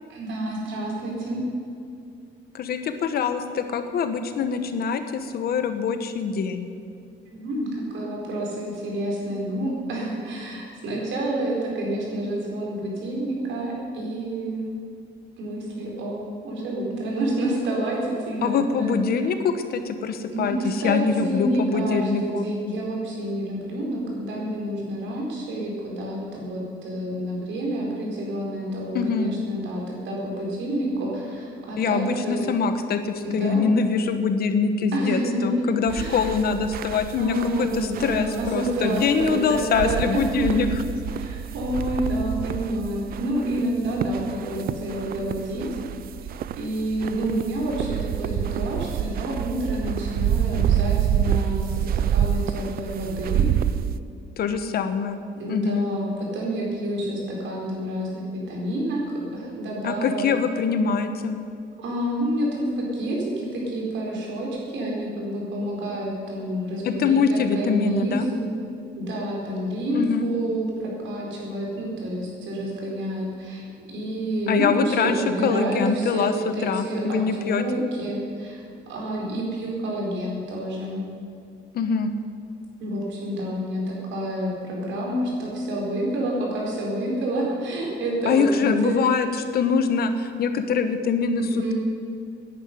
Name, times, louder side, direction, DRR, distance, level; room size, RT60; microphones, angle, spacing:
voice 1, 0.1-1.4 7.2-14.6 15.4-18.9 20.3-32.5 33.2-33.6 34.9-36.3 37.2-40.6 41.1-45.6 46.6-53.4 55.3-59.0 59.3-60.3 61.8-68.5 68.9-78.6 78.9-81.0 82.8-89.0 91.4-91.7, right 1 dB, 70° right, -2 dB, 4.8 m, -28 dB
voice 2, 2.5-6.7 18.4-22.5 28.9-29.3 31.8-40.7 54.4-55.2 55.5-55.9 59.8-61.4 66.8-68.3 69.9-70.3 74.5-77.9 81.7-82.1 88.3-89.3 89.5-91.4, left 5 dB, 50° left, 9 dB, 1.1 m, -24 dB
sound 1, 35.9-54.0, right 10 dB, 50° right, 0.4 m, -28 dB
11.0 x 10.5 x 9.6 m, 2.4 s
cardioid pair, 165°, 20 cm